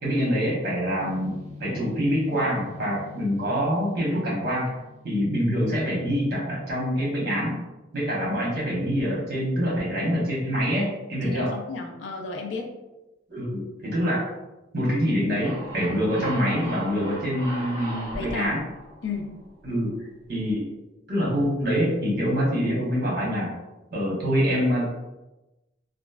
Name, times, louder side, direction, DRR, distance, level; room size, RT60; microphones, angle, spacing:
voice 1, 0.0-1.3 1.6-4.7 5.0-7.6 7.9-11.5 13.3-14.2 14.7-18.6 19.6-20.0 20.3-20.7 21.1-23.5 23.9-24.9, equal, 50° right, -5 dB, 1.0 m, -25 dB
sound 1, 1.0-5.9, left 3 dB, 35° right, 0.4 m, -44 dB
voice 2, 11.3-12.7 18.1-18.5 19.0-19.4, left 4 dB, 70° left, 3 dB, 0.4 m, -33 dB
sound 2, 15.4-19.9, right 1 dB, 15° left, 0.9 m, -37 dB
2.9 x 2.4 x 2.3 m, 1.0 s
head